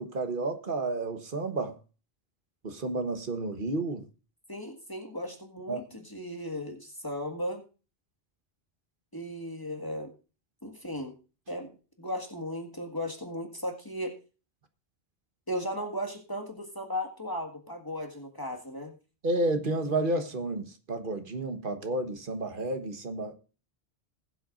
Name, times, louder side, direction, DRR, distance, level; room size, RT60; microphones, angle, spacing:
voice 1, 0.0-1.8 2.6-4.1 5.7-5.8 19.2-23.4, right 2 dB, 50° right, 1.4 m, -31 dB
voice 2, 4.5-7.6 9.1-10.1 10.6-11.1 11.5-11.7 12.0-14.1 15.5-19.0, equal, 20° left, 1.8 m, -36 dB
20.0 x 7.9 x 2.5 m
omnidirectional pair, 1.1 m